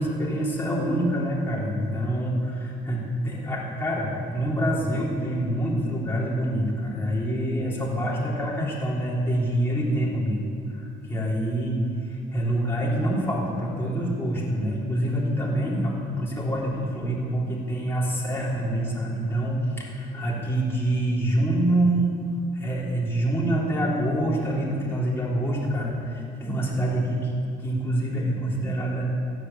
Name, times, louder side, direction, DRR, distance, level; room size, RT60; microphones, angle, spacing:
voice 1, 0.0-10.4 10.7-22.1 22.5-29.1, right 1 dB, 15° left, -5 dB, 3.7 m, -26 dB
15.0 x 9.9 x 7.2 m, 2.4 s
cardioid pair, 110°, 17 cm